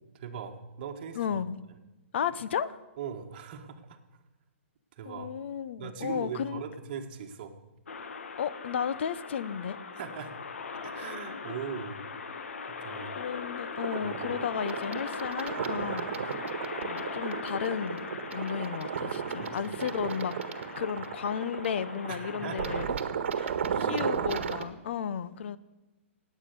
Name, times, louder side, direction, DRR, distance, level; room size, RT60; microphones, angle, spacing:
voice 1, 0.1-1.4 3.0-4.0 5.0-5.3 5.8-7.5 9.9-10.3 10.8-12.0 12.7-13.2 14.0-14.2 19.4-19.5 19.8-19.9 22.1-22.6 23.7-24.2, right 7 dB, 45° right, 1.8 m, -40 dB
voice 2, 1.1-1.6 2.1-2.8 5.0-6.6 8.4-9.8 10.9-11.1 13.1-16.1 16.8-20.4 20.8-22.9 23.4-25.6, left 8 dB, 60° left, 0.8 m, -34 dB
sound 1, 7.9-22.8, left 5 dB, 85° left, 1.3 m, -40 dB
sound 2, 13.8-24.6, right 7 dB, 60° right, 1.5 m, -34 dB
18.5 x 8.5 x 6.9 m
hypercardioid pair, 155°, 7 cm